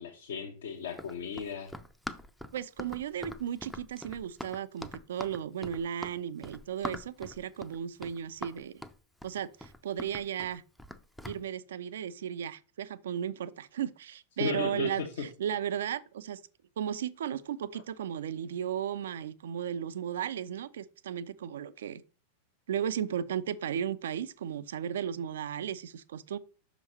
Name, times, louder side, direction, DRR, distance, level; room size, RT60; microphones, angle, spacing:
voice 1, 0.0-1.7 14.4-14.9, left 6 dB, 60° left, 0.9 m, -35 dB
Run, 0.9-11.4, left 1 dB, ahead, 0.5 m, -43 dB
voice 2, 2.5-8.8 9.2-10.6 11.3-16.4 16.8-22.0 22.7-26.4, right 9 dB, 60° right, 0.4 m, -35 dB
6.1 x 5.1 x 4.1 m
figure-of-eight pair, 90°, 0 cm